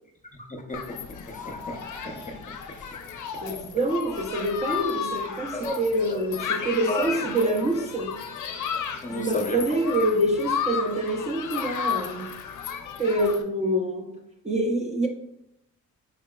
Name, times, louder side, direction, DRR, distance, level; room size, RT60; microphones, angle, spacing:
voice 1, 0.5-0.8 1.3-2.4 2.7-2.8 3.3-3.4 5.5-5.8 6.1-6.2 6.9-7.1 9.0-9.6, left 1 dB, 20° left, 0.7 m, -33 dB
Human group actions, 0.7-13.4, left 7 dB, 60° left, 0.5 m, -33 dB
voice 2, 3.4-8.2 9.1-12.3 13.0-14.1 14.4-15.1, right 1 dB, 20° right, 0.6 m, -26 dB
4.7 x 2.8 x 2.3 m
supercardioid pair, 55°, 35 cm